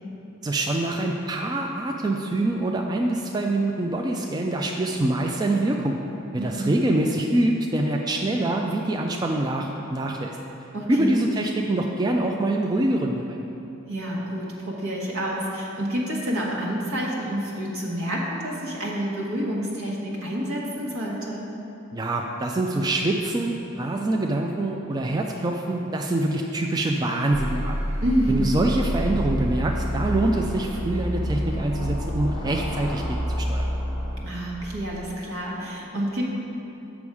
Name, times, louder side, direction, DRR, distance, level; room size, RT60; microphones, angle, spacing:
voice 1, 0.4-6.0 6.3-10.4 10.9-13.4 21.9-27.9 28.3-33.7, right 2 dB, 20° right, 1 dB, 0.3 m, -25 dB
voice 2, 6.4-6.7 10.7-11.1 13.9-21.5 28.0-28.5 34.2-36.3, equal, 80° right, -3 dB, 1.4 m, -28 dB
sound 1, 27.3-34.2, equal, 20° left, 1.1 m, -28 dB
7.0 x 6.1 x 4.8 m, 3.0 s
head